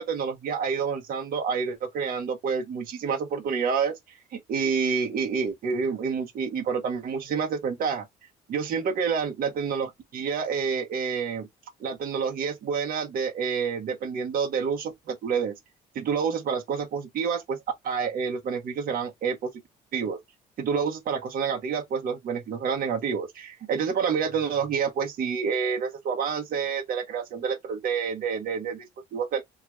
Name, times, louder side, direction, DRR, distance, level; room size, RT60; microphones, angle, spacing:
voice 1, 0.0-8.0 8.5-11.5 11.8-15.5 15.9-17.6 17.8-19.5 19.9-20.2 20.6-29.4, right 6 dB, 60° right, 1.1 m, -28 dB
3.0 x 2.4 x 3.0 m
cardioid pair, 110°, 17 cm